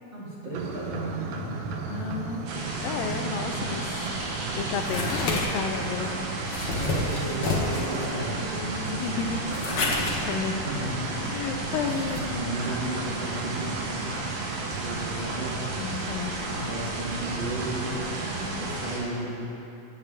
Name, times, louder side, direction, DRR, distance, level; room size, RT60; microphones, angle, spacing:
voice 1, 0.1-1.6 6.7-9.3 10.6-11.6 12.2-14.3 14.6-15.6 16.4-19.5, right 1 dB, 35° right, -8 dB, 2.6 m, -35 dB
sound 1, 0.5-18.8, right 5 dB, 90° right, 2.6 m, -36 dB
voice 2, 1.9-4.0 4.5-6.2 8.8-9.4 9.8-10.7 11.2-12.2 15.8-16.4, left 6 dB, 90° left, 6 dB, 2.4 m, -32 dB
sound 2, 2.5-19.0, right 2 dB, 70° right, 3.0 m, -34 dB
sound 3, 4.0-12.2, left 3 dB, 55° left, 1.3 m, -31 dB
18.0 x 8.6 x 3.5 m, 2.7 s
omnidirectional pair, 3.9 m